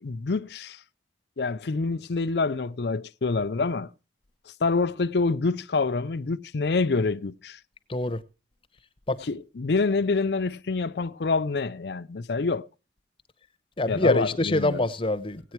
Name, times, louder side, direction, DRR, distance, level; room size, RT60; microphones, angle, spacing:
voice 1, 0.0-0.8 1.4-3.9 4.6-7.6 9.3-12.7 13.9-14.8, left 4 dB, 65° left, 0.5 m, -26 dB
voice 2, 7.9-8.2 9.1-9.2 13.8-15.5, left 2 dB, 30° left, 0.8 m, -25 dB
17.0 x 9.0 x 4.5 m
head